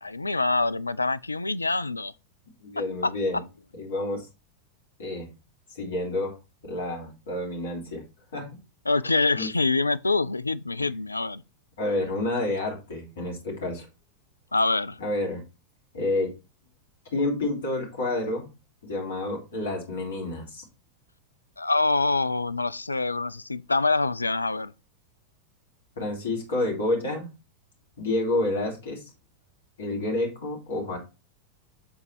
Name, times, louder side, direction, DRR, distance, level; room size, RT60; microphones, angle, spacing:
voice 1, 0.0-2.1 3.0-3.1 8.9-11.4 14.5-15.0 21.6-24.7, left 3 dB, 80° left, 0.3 m, -25 dB
voice 2, 2.6-3.4 3.7-4.3 5.0-5.3 5.7-6.3 6.6-8.0 8.3-8.5 9.0-9.5 11.8-13.9 15.0-15.4 15.9-16.3 17.1-18.5 18.8-20.6 26.0-27.3 28.0-29.0 29.8-31.0, left 2 dB, 65° left, 3.0 m, -29 dB
7.7 x 4.1 x 4.4 m
figure-of-eight pair, 90°, 0 cm